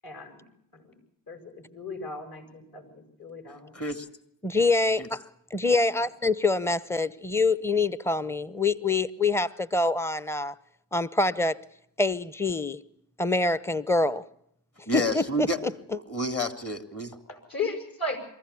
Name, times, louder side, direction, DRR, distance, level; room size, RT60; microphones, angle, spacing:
voice 1, 0.0-0.5 0.7-0.9 1.3-3.7 6.0-6.1 17.3-18.2, left 3 dB, 45° left, 5 dB, 7.4 m, -36 dB
voice 2, 3.7-4.1 5.0-5.1 14.9-15.6 15.9-17.1, equal, 30° left, 8 dB, 3.1 m, -30 dB
voice 3, 4.4-10.5 10.9-11.6 12.0-12.8 13.2-14.3 14.9-15.7, left 3 dB, 5° left, 17 dB, 1.0 m, -25 dB
23.5 x 15.5 x 8.5 m, 0.75 s
supercardioid pair, 45°, 47 cm